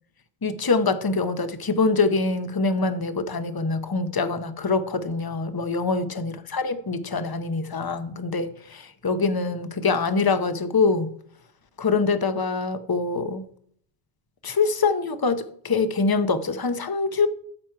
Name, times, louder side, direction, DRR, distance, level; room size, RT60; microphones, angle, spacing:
voice 1, 0.4-11.1 11.8-13.4 14.4-17.3, left 4 dB, 25° left, 0.6 m, -24 dB
14.0 x 6.0 x 4.6 m
omnidirectional pair, 1.1 m